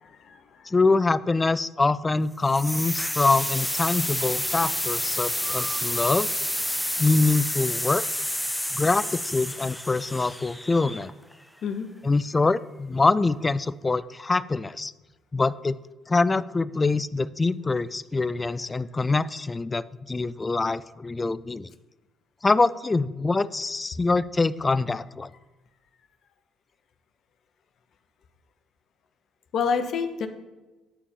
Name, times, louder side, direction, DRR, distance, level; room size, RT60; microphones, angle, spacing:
voice 1, 0.0-0.7 11.6-11.9 29.5-30.3, left 6 dB, 60° left, 8 dB, 1.0 m, -28 dB
voice 2, 0.7-6.3 7.0-8.0 8.7-11.1 12.0-14.9 15.3-15.8 16.1-21.7 22.4-25.3, left 3 dB, 25° left, 17 dB, 0.4 m, -24 dB
sound 1, 2.4-11.3, left 1 dB, 5° left, 0.9 m, -29 dB
11.5 x 4.3 x 7.0 m, 1.2 s
hypercardioid pair, 55°, 0 cm